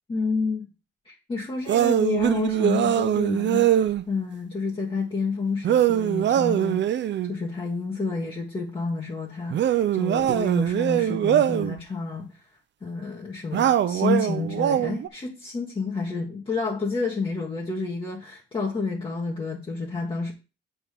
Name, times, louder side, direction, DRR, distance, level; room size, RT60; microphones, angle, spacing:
voice 1, 0.1-0.7 1.0-12.3 12.8-20.3, left 4 dB, 25° left, -3 dB, 1.4 m, -29 dB
sound 1, 1.7-4.0 5.6-7.3 9.5-11.8 13.5-15.1, right 11 dB, 65° right, 0.6 m, -22 dB
7.9 x 3.8 x 6.6 m, 0.30 s
cardioid pair, 140°, 20 cm